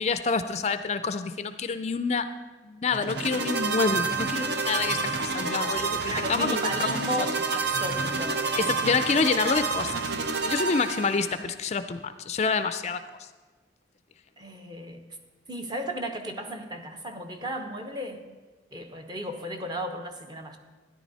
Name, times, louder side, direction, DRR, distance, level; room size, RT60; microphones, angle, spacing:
voice 1, 0.0-2.3 2.6-7.0 8.6-9.9 10.4-13.0, left 4 dB, 35° left, 11 dB, 0.4 m, -27 dB
sound 1, 2.9-11.4, right 4 dB, 65° right, 0.9 m, -29 dB
voice 2, 5.5-8.4 8.7-8.9 14.4-15.0 15.5-18.3 18.7-20.6, equal, 25° right, 5 dB, 0.9 m, -35 dB
13.0 x 10.5 x 4.1 m, 1.4 s
head